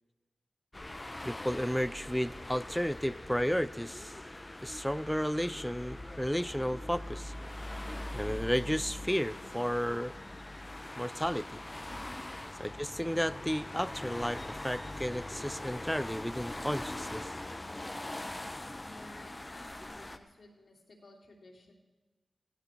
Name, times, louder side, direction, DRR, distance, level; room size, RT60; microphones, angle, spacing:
sound 1, 0.7-20.2, left 1 dB, 25° left, 0.9 m, -42 dB
voice 1, 1.2-4.1 4.6-7.3 8.1-10.1 11.0-11.6 12.6-17.3, equal, 5° left, 16 dB, 0.5 m, -33 dB
voice 2, 18.8-21.7, left 2 dB, 65° left, 0 dB, 3.1 m, -55 dB
17.0 x 16.0 x 4.6 m, 1.2 s
cardioid pair, 60°, 0 cm